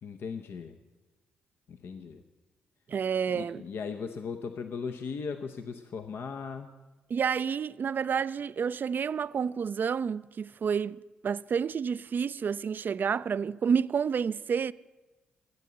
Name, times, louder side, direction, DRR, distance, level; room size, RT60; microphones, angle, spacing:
voice 1, 0.0-0.8 1.7-2.2 3.3-6.7, left 5 dB, 65° left, 0.7 m, -37 dB
voice 2, 2.9-3.6 7.1-14.7, right 6 dB, 50° right, 0.4 m, -29 dB
14.5 x 8.4 x 8.0 m
hypercardioid pair, 45°, 4 cm